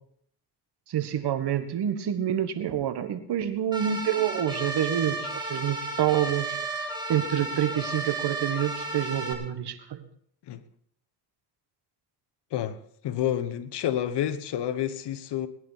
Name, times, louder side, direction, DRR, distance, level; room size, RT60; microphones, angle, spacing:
voice 1, 0.9-10.0, right 10 dB, 75° right, 1.5 m, -28 dB
sound 1, 3.7-9.3, right 2 dB, 10° right, 3.1 m, -33 dB
voice 2, 12.5-15.5, left 11 dB, 85° left, 1.1 m, -29 dB
20.0 x 10.5 x 4.1 m
cardioid pair, 75°, 40 cm